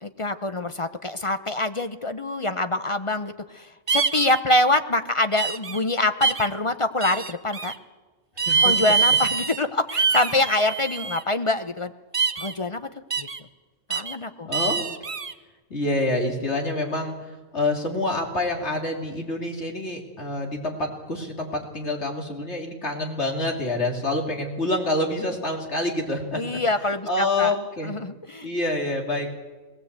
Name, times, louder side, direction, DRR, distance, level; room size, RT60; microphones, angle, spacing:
voice 1, 0.0-7.7 8.6-11.9 12.4-12.9 13.2-13.3 13.9-14.5 26.3-27.5 27.8-28.5, left 2 dB, 35° left, 9 dB, 0.6 m, -25 dB
sound 1, 3.9-4.4 5.4-5.8 6.2-6.5 7.0-7.7 8.4-9.6 9.9-11.2 12.1-12.5 13.1-13.4 13.9-14.1 14.5-15.3, right 5 dB, 35° right, 0.7 m, -24 dB
voice 2, 8.4-8.7 14.4-14.8 15.7-17.1 17.5-26.6 27.1-27.9 28.4-29.3, left 2 dB, 65° left, 1 dB, 3.2 m, -27 dB
20.0 x 17.0 x 8.1 m, 1.3 s
omnidirectional pair, 1.3 m